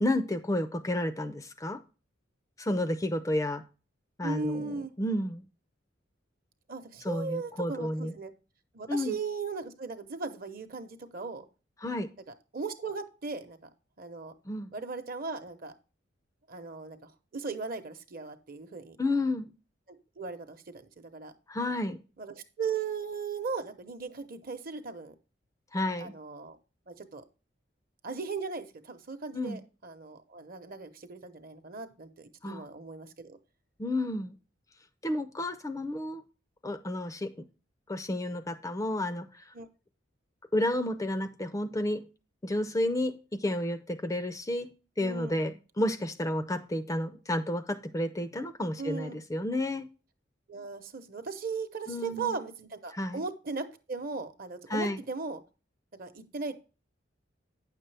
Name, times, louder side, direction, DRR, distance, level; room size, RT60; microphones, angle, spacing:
voice 1, 0.0-1.8 2.6-3.6 4.2-4.7 5.0-5.4 7.0-8.1 8.9-9.2 11.8-12.1 14.5-14.7 19.0-19.5 21.5-22.0 25.7-26.1 29.3-29.6 32.4-32.6 33.8-34.3 35.0-36.2 36.6-37.3 37.9-39.3 40.5-42.0 42.4-44.7 45.0-49.9 51.9-52.3 52.9-53.2 54.7-55.0, left 1 dB, 15° left, 10 dB, 0.4 m, -31 dB
voice 2, 4.2-4.9 6.7-8.3 8.7-11.5 12.5-13.6 14.0-14.3 14.7-15.7 16.5-19.0 19.9-21.3 22.2-25.1 26.0-26.6 26.9-27.2 28.0-33.4 39.5-39.7 45.0-45.6 48.8-49.2 50.5-55.4 56.0-56.5, right 4 dB, 50° right, 9 dB, 0.9 m, -37 dB
9.4 x 6.6 x 3.3 m, 0.33 s
head